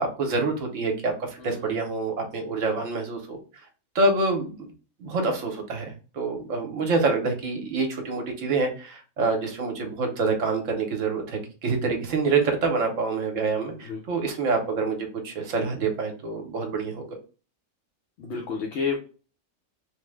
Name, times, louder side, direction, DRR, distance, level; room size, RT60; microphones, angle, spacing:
voice 1, 0.0-3.4 3.9-4.7 5.0-17.1, right 3 dB, 75° right, 3 dB, 1.0 m, -26 dB
voice 2, 1.4-1.8 13.8-14.0 18.2-19.0, left 5 dB, 65° left, -2 dB, 0.8 m, -30 dB
3.1 x 2.0 x 3.2 m, 0.36 s
omnidirectional pair, 1.4 m